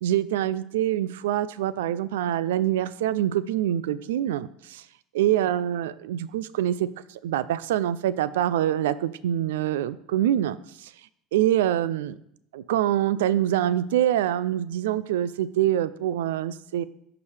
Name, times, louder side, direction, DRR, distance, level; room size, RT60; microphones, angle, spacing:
voice 1, 0.0-4.8 5.1-6.9 7.2-10.9 11.3-12.2 12.5-16.8, right 11 dB, 85° right, 17 dB, 0.3 m, -25 dB
13.0 x 4.8 x 3.3 m, 0.73 s
supercardioid pair, 95°, 0 cm